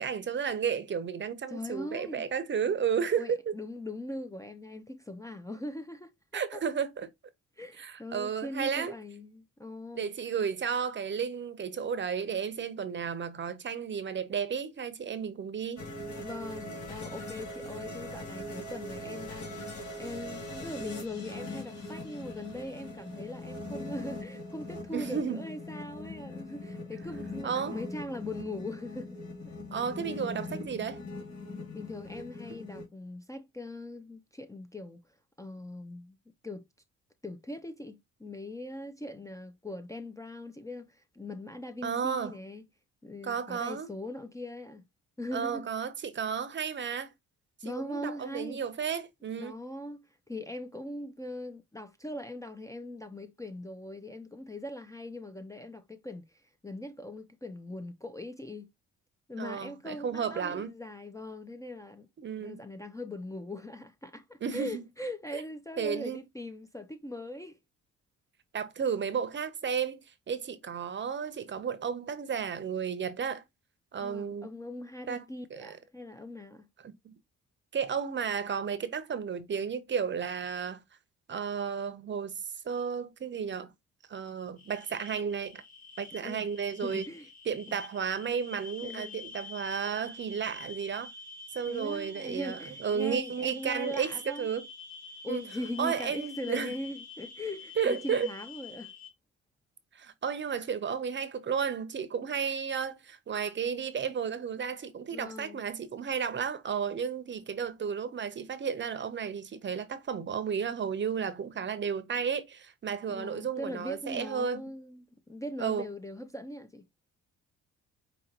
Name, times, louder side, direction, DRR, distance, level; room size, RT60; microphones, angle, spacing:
voice 1, 0.0-3.5 6.3-7.1 7.8-8.9 9.9-15.9 24.9-25.4 27.4-27.8 29.7-31.0 41.8-42.3 43.2-43.9 45.3-47.1 47.6-49.6 59.4-60.7 62.2-62.6 64.4-64.8 65.3-65.4 65.8-66.2 68.5-73.4 73.9-74.5 75.1-75.2 75.5-75.8 76.8-77.1 77.7-80.8 81.3-83.7 84.1-85.6 86.0-87.1 87.5-91.1 91.5-94.7 95.3-95.4 95.8-96.7 97.8-98.3 99.9-114.6 115.6-115.9, right 7 dB, 40° right, 0.7 m, -33 dB
voice 2, 1.5-2.3 3.2-6.6 7.6-10.1 16.2-29.2 29.4-29.5 31.7-35.0 35.4-36.2 36.4-36.7 37.2-42.6 43.0-44.8 45.2-45.7 47.6-48.6 49.4-58.7 59.3-62.1 62.4-67.6 74.0-76.7 86.2-86.4 86.8-87.3 87.7-87.8 88.8-89.2 91.7-94.5 95.2-98.9 105.1-105.6 113.1-116.8, left 1 dB, 10° left, 0.5 m, -41 dB
sound 1, 15.8-32.8, left 2 dB, 65° left, 2.2 m, -41 dB
sound 2, 84.6-99.1, left 3 dB, 25° left, 1.5 m, -47 dB
5.1 x 2.8 x 2.8 m
cardioid pair, 90°, 30 cm